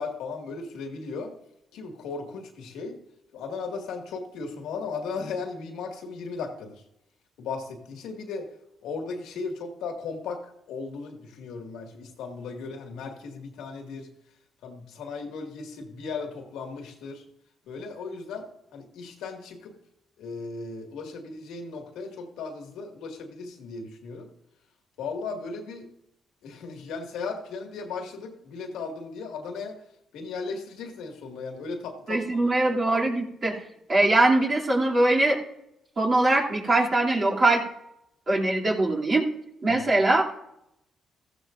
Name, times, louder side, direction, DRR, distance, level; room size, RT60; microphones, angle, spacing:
voice 1, 0.0-1.3 1.7-3.0 3.3-6.8 7.4-8.5 8.8-14.1 14.6-17.2 17.7-19.7 20.2-24.3 25.0-25.9 26.4-29.8 30.1-32.5 39.7-39.9, left 4 dB, 85° left, 3 dB, 2.0 m, -36 dB
voice 2, 32.1-35.4 36.0-37.6 38.3-39.3 39.6-40.2, right 2 dB, 40° right, -4 dB, 2.8 m, -22 dB
15.0 x 14.5 x 2.6 m, 0.81 s
cardioid pair, 90°, 0 cm